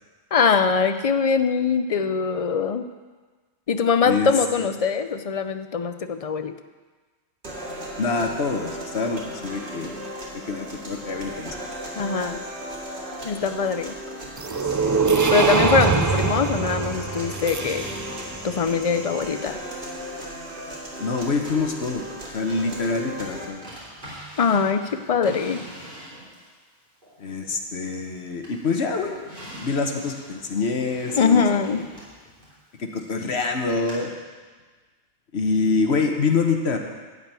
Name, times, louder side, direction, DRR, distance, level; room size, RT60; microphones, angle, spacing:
voice 1, 0.3-2.9 3.7-6.6 12.0-12.4 13.2-13.9 15.3-17.9 18.4-19.6 24.4-25.6 31.2-31.8, left 5 dB, 45° left, 10 dB, 0.5 m, -22 dB
sound 1, 7.4-23.4, equal, 75° right, 2.4 m, -36 dB
voice 2, 8.0-10.0 10.5-11.7 15.7-15.9 21.0-22.0 22.3-23.7 27.2-29.2 29.6-31.5 32.8-34.1 35.3-36.8, left 4 dB, 80° left, 3 dB, 1.3 m, -25 dB
sound 2, 14.4-18.4, right 5 dB, 30° right, 0.3 m, -23 dB
Drawer open or close, 23.6-26.5 27.0-28.1 28.4-33.1 33.9-34.0, equal, 45° right, 3.7 m, -43 dB
12.0 x 5.1 x 8.9 m, 1.4 s
omnidirectional pair, 1.1 m